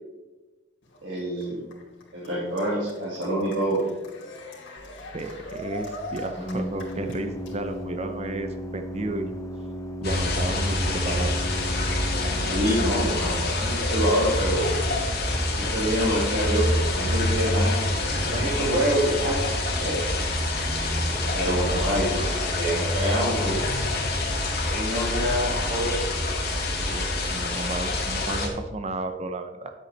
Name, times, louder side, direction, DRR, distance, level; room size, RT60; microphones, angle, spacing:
Cheering, 0.8-7.8, left 1 dB, 80° left, 2.7 m, -41 dB
voice 1, 1.0-1.7 2.1-3.8 12.5-14.7 15.4-19.4 19.8-20.0 21.3-24.1 24.7-25.9, equal, 70° right, -7 dB, 2.2 m, -26 dB
Organ, 4.8-14.9, equal, 15° left, 0.5 m, -37 dB
voice 2, 5.1-9.3 10.0-11.4 21.5-21.8 26.8-29.7, right 2 dB, 35° right, 7 dB, 0.6 m, -33 dB
sound 1, 10.0-28.5, left 2 dB, 55° left, 1.8 m, -26 dB
10.0 x 7.8 x 3.3 m, 1.2 s
head